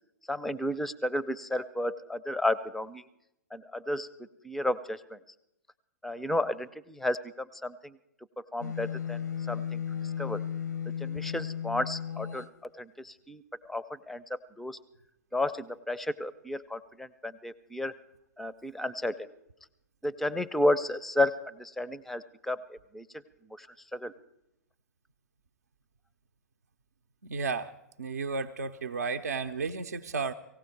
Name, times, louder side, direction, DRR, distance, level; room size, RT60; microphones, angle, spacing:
voice 1, 0.3-3.0 3.5-5.2 6.0-8.0 8.4-9.2 9.5-10.4 10.9-12.5 12.8-14.8 15.3-17.9 18.4-19.3 20.0-23.1 23.6-23.7 23.9-24.1, left 1 dB, ahead, 17 dB, 0.5 m, -32 dB
sound 1, 8.6-12.5, left 8 dB, 85° left, 0.6 m, -35 dB
voice 2, 27.2-30.3, right 4 dB, 70° right, 7 dB, 0.6 m, -33 dB
18.5 x 16.0 x 4.6 m, 0.87 s
figure-of-eight pair, 110°, 9 cm